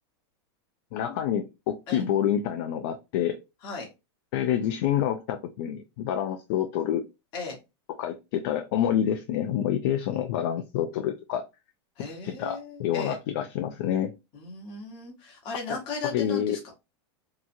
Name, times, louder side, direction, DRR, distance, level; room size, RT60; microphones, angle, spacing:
voice 1, 0.9-3.4 4.3-7.0 7.9-11.4 12.2-14.1 15.7-16.6, left 10 dB, 50° left, 7 dB, 0.4 m, -28 dB
voice 2, 12.0-13.2 14.3-16.7, left 4 dB, 35° left, 1 dB, 1.1 m, -36 dB
2.8 x 2.3 x 2.5 m, 0.25 s
supercardioid pair, 160°, 14 cm